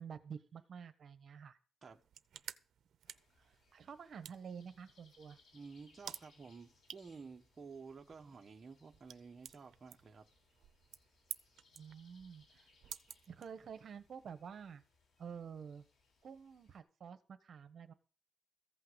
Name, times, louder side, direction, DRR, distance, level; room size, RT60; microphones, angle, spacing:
voice 1, 0.0-1.6 3.4-5.4 11.7-12.7 13.3-14.8 15.2-15.8 16.2-17.9, right 7 dB, 55° right, 1.3 m, -50 dB
sound 1, 1.9-14.0, right 9 dB, 85° right, 0.6 m, -54 dB
sound 2, 3.0-16.8, left 3 dB, 80° left, 3.8 m, -71 dB
voice 2, 5.5-10.3, right 5 dB, 35° right, 1.1 m, -52 dB
15.0 x 5.8 x 8.1 m
wide cardioid pair, 140°, 0 cm